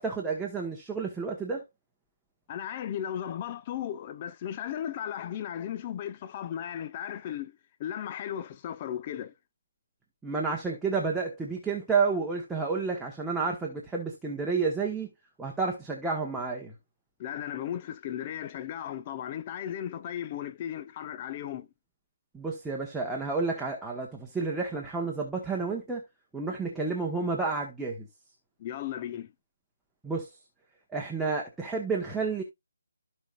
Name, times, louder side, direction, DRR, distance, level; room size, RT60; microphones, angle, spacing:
voice 1, 0.0-1.6 10.2-15.1 15.4-16.7 22.3-26.0 26.3-28.1 30.0-30.3 30.9-32.4, right 4 dB, 5° right, 1.2 m, -30 dB
voice 2, 2.5-9.3 17.2-21.7 28.6-29.3, left 10 dB, 25° left, 0.7 m, -36 dB
14.5 x 5.4 x 2.4 m
figure-of-eight pair, 155°, 0 cm